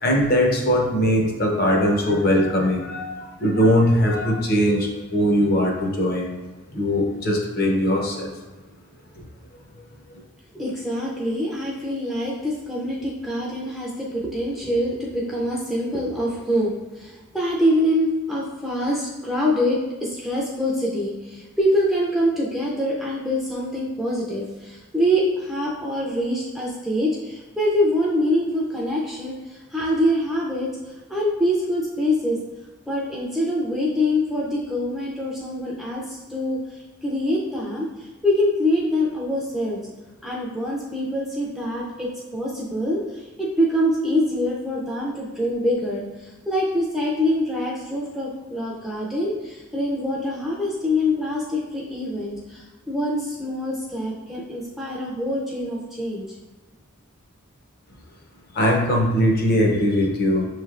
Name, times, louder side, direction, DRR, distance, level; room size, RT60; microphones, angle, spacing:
voice 1, 0.0-6.3 6.7-8.3 9.1-9.2 58.5-60.5, equal, 45° left, 0 dB, 0.7 m, -20 dB
voice 2, 10.5-30.7 31.1-32.4 32.9-39.9 40.2-56.3, left 1 dB, ahead, -5 dB, 0.4 m, -25 dB
5.9 x 3.2 x 2.4 m, 1.2 s
head